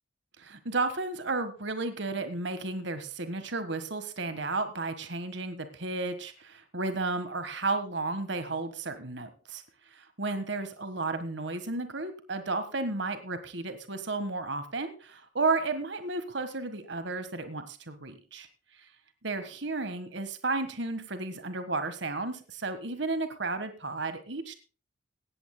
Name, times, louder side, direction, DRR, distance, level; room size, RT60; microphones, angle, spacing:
voice 1, 0.4-18.5 18.7-18.9 19.2-24.5, right 3 dB, 60° right, 10 dB, 1.5 m, -33 dB
17.5 x 14.5 x 2.2 m, 0.35 s
head